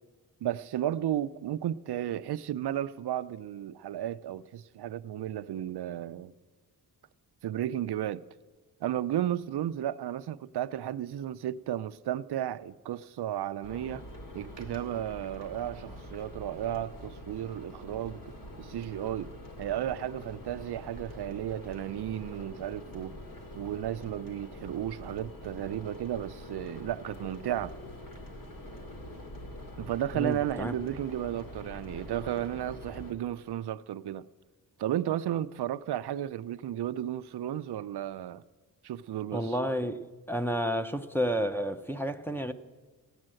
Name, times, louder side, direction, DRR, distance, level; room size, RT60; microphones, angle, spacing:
voice 1, 0.4-6.3 7.4-8.2 8.8-14.0 14.3-19.3 19.6-23.2 23.5-27.8 29.8-34.3 34.8-38.4 38.8-39.5, right 11 dB, 90° right, 0.6 m, -33 dB
sound 1, 13.6-33.1, left 1 dB, 60° left, 2.7 m, -45 dB
voice 2, 30.1-30.7 39.3-42.5, equal, 5° left, 0.6 m, -31 dB
16.0 x 9.8 x 7.7 m
wide cardioid pair, 125°, 38 cm